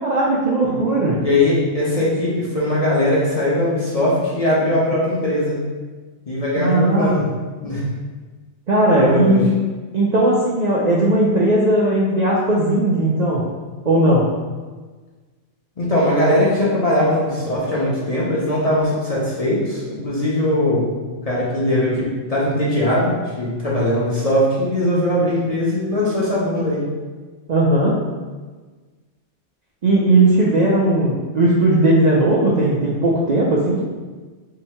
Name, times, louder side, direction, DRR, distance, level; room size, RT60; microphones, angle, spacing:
voice 1, 0.0-1.2 6.6-7.1 8.7-9.5 9.9-13.4 13.8-14.3 27.5-27.9 29.8-33.8, right 1 dB, 65° right, -5 dB, 0.4 m, -17 dB
voice 2, 1.2-5.6 6.3-7.2 7.6-7.8 9.0-9.4 15.8-20.9 21.3-22.0 22.3-26.8, left 1 dB, 35° left, -7 dB, 0.7 m, -20 dB
2.8 x 2.7 x 4.3 m, 1.4 s
omnidirectional pair, 1.3 m